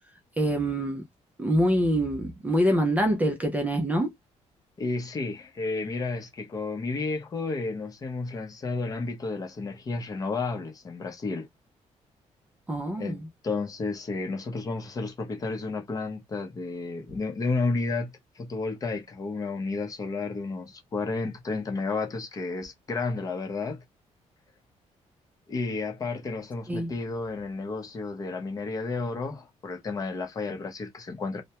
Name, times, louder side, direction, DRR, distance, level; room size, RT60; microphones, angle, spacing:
voice 1, 0.4-1.0 1.4-4.1 12.7-13.3 26.7-26.9, equal, 10° right, 0.4 m, -25 dB
voice 2, 4.8-11.5 13.0-23.8 25.5-31.4, left 3 dB, 30° left, 0.6 m, -32 dB
2.2 x 2.1 x 2.8 m
cardioid pair, 160°, 12 cm